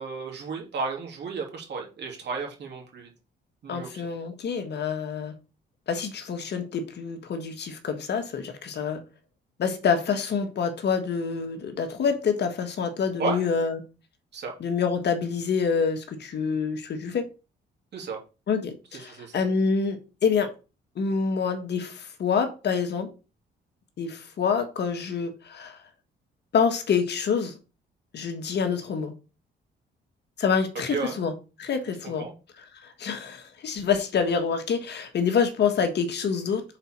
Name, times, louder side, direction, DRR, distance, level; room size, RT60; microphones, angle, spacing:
voice 1, 0.0-3.1 3.6-4.1 13.2-13.4 14.3-14.5 17.9-18.2 19.1-19.4 30.9-31.2 32.2-32.3, right 4 dB, 60° right, 3.0 m, -33 dB
voice 2, 3.7-5.3 5.9-9.0 9.6-13.8 14.6-17.3 18.5-20.5 21.0-23.1 24.0-25.8 26.5-27.5 28.1-29.1 30.4-31.3 31.6-32.3 32.6-36.6, left 6 dB, 60° left, 1.5 m, -27 dB
5.7 x 4.2 x 5.9 m
cardioid pair, 90°, 20 cm